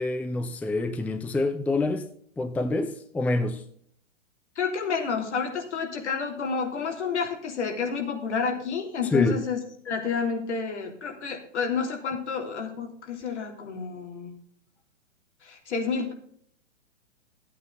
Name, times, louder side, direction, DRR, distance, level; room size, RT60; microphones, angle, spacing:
voice 1, 0.0-2.1 2.4-3.6 9.1-9.4, left 2 dB, 5° left, 0.6 m, -26 dB
voice 2, 4.5-9.6 9.8-14.3 15.4-16.1, left 5 dB, 70° left, 3.3 m, -30 dB
13.5 x 8.5 x 3.9 m
figure-of-eight pair, 115°, 36 cm